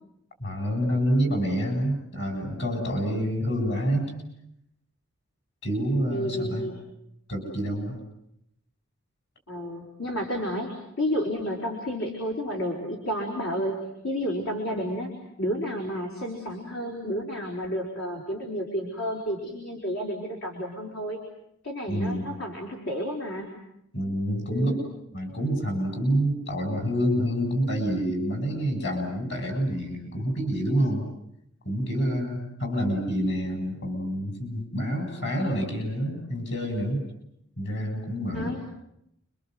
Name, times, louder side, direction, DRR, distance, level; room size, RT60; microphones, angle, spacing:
voice 1, 0.4-4.1 5.6-6.7 7.3-8.0 21.9-22.3 23.9-24.7 25.1-31.1 31.6-37.0 37.6-38.5, equal, 60° left, 4 dB, 7.7 m, -27 dB
voice 2, 6.1-6.8 9.5-10.7 11.0-13.7 14.0-15.1 15.4-21.2 21.6-23.5 24.5-24.8 38.3-38.6, equal, 85° left, 1 dB, 4.9 m, -31 dB
29.5 x 25.5 x 8.0 m, 0.80 s
head